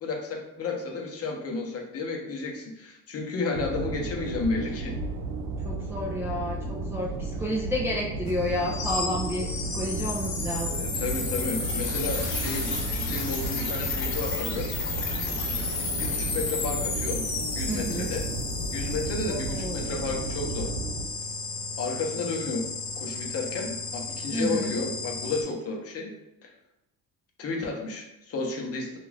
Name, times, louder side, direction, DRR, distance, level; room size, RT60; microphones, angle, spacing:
voice 1, 0.0-4.9 10.7-14.7 16.0-17.2 17.6-18.3 18.7-20.7 21.8-22.7 23.0-26.1 26.4-26.5 27.4-29.0, left 3 dB, 40° left, 1 dB, 0.7 m, -32 dB
sound 1, 3.5-21.0, right 3 dB, 75° right, 0.6 m, -33 dB
voice 2, 5.6-10.8 17.7-18.2 19.3-19.9 24.3-24.7, left 1 dB, 5° right, -4 dB, 0.3 m, -31 dB
sound 2, 8.3-25.4, left 4 dB, 85° left, 0.8 m, -33 dB
2.5 x 2.4 x 3.2 m, 0.87 s
cardioid pair, 110°, 35 cm